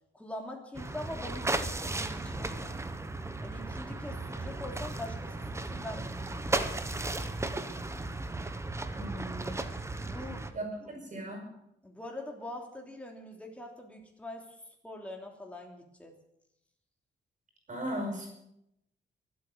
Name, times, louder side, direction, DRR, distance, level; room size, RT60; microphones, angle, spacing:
voice 1, 0.1-2.9 3.4-6.9 10.1-10.6 11.8-14.5 14.8-16.2, left 1 dB, 5° left, 1 dB, 3.1 m, -43 dB
sound 1, 0.7-10.5, right 2 dB, 15° right, 1.0 m, -35 dB
voice 2, 8.9-9.6 10.5-11.5 17.7-18.3, right 1 dB, 40° right, 2 dB, 5.7 m, -37 dB
23.5 x 8.6 x 6.7 m, 0.81 s
wide cardioid pair, 145°, 19 cm